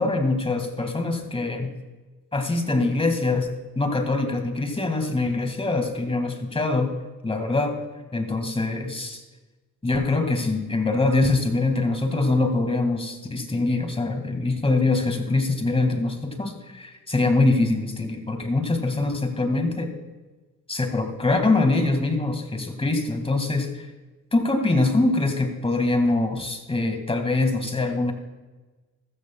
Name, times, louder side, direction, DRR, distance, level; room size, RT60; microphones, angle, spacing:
voice 1, 0.0-1.7 2.3-3.5 3.7-6.9 7.2-7.8 8.1-9.2 9.8-19.9 20.7-23.8 24.3-28.1, left 2 dB, 20° left, 5 dB, 1.8 m, -23 dB
14.0 x 13.5 x 2.2 m, 1.2 s
cardioid pair, 90°, 30 cm